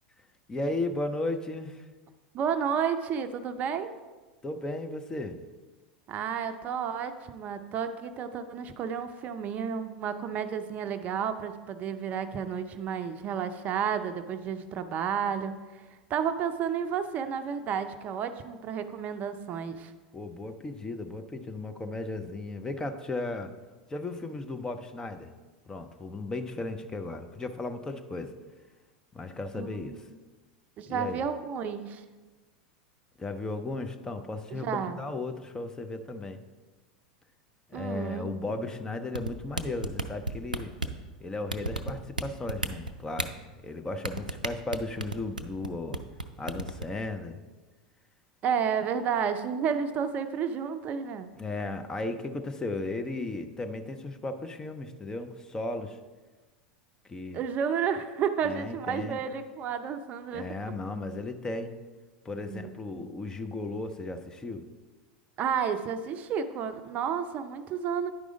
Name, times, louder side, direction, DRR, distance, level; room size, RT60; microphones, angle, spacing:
voice 1, 0.5-1.9 4.4-5.4 20.1-23.5 23.9-25.3 25.7-28.3 29.1-30.1 30.9-31.3 33.2-36.4 37.7-40.7 41.2-43.3 43.6-46.0 46.4-47.4 51.4-56.0 57.1-57.4 58.4-59.2 60.3-61.7 62.2-64.6, left 2 dB, 15° left, 7 dB, 0.6 m, -35 dB
voice 2, 2.3-3.9 6.1-15.8 16.1-19.9 29.5-30.0 30.8-32.0 34.5-35.0 37.7-38.6 48.4-51.3 57.3-60.5 62.5-63.1 65.4-68.1, right 7 dB, 35° right, 9 dB, 0.5 m, -31 dB
sound 1, 39.1-41.0 41.5-42.2 42.5-43.3 44.0-45.7 45.9-46.2 46.5-46.8, right 2 dB, 90° right, 0.4 m, -31 dB
10.0 x 4.9 x 3.8 m, 1.3 s
figure-of-eight pair, 85°, 4 cm